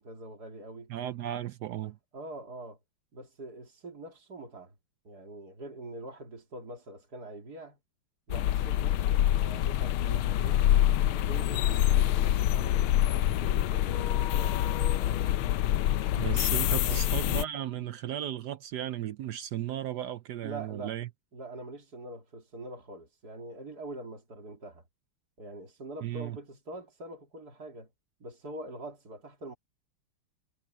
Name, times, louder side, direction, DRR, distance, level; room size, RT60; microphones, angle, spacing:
voice 1, 0.0-0.9 2.1-2.8 3.1-4.7 5.0-7.8 8.3-10.6 11.1-15.3 16.8-17.0 20.4-21.0 21.3-24.8 25.4-27.9 28.2-29.5, right 2 dB, 45° right, 3.5 m, -44 dB
voice 2, 0.9-2.0 16.2-21.1 26.0-26.4, right 12 dB, 75° right, 0.9 m, -35 dB
sound 1, 8.3-17.4, left 12 dB, 80° left, 1.5 m, -26 dB
omnidirectional pair, 2.3 m